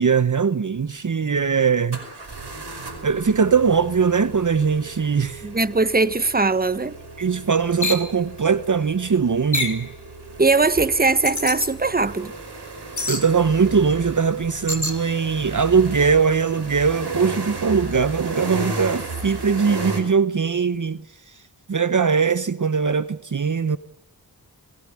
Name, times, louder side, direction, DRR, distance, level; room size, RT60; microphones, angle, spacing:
voice 1, 0.0-2.0 3.0-5.5 7.2-9.9 13.1-21.0 21.7-23.8, right 6 dB, 50° right, 0.9 m, -20 dB
sound 1, 0.8-0.9 1.9-20.0, right 2 dB, 80° right, 5.1 m, -35 dB
voice 2, 5.4-7.0 10.4-12.3, right 3 dB, 25° right, 1.1 m, -20 dB
sound 2, 7.8-8.1 9.5-9.8 11.2-11.7 13.0-13.3 14.7-15.0, left 3 dB, 45° left, 4.1 m, -25 dB
26.0 x 19.5 x 8.7 m
cardioid pair, 45°, 40 cm